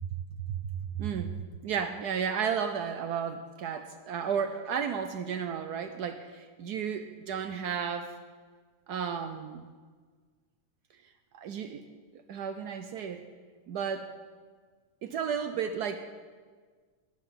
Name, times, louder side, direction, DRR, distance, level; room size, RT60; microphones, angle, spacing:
voice 1, 1.0-1.3 1.6-8.1 8.9-9.6 11.3-11.8 12.3-13.2 13.7-14.1 15.0-16.0, right 7 dB, 70° right, 7 dB, 1.2 m, -33 dB
20.0 x 8.0 x 5.7 m, 1.5 s
omnidirectional pair, 1.9 m